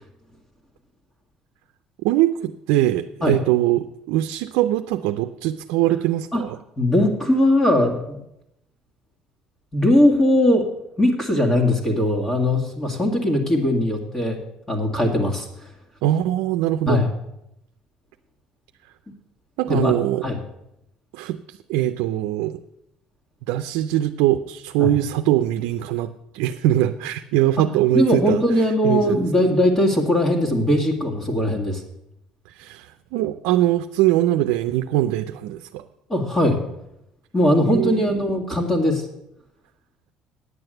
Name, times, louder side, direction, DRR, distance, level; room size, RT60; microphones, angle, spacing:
voice 1, 2.0-6.6 16.0-17.1 19.6-20.2 21.1-22.6 23.5-29.3 32.5-35.8 37.7-38.1, right 13 dB, 85° right, 8 dB, 0.5 m, -22 dB
voice 2, 6.8-8.2 9.7-10.7 11.0-14.4 14.7-15.5 16.9-17.1 19.7-20.0 20.2-20.4 24.8-24.9 27.9-31.8 36.1-36.6 37.3-39.1, left 1 dB, 25° left, 0 dB, 2.2 m, -20 dB
9.7 x 7.8 x 7.8 m, 0.83 s
cardioid pair, 100°, 2 cm